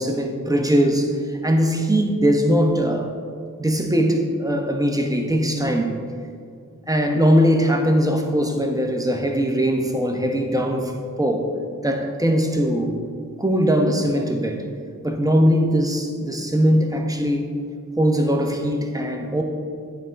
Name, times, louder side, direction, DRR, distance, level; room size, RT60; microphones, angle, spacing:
voice 1, 0.0-3.1 3.6-5.9 6.9-10.9 11.2-11.5 11.8-13.0 13.4-14.7 15.0-17.5 18.0-19.4, equal, 10° right, 3 dB, 1.1 m, -20 dB
9.1 x 3.9 x 4.6 m, 2.2 s
cardioid pair, 45°, 34 cm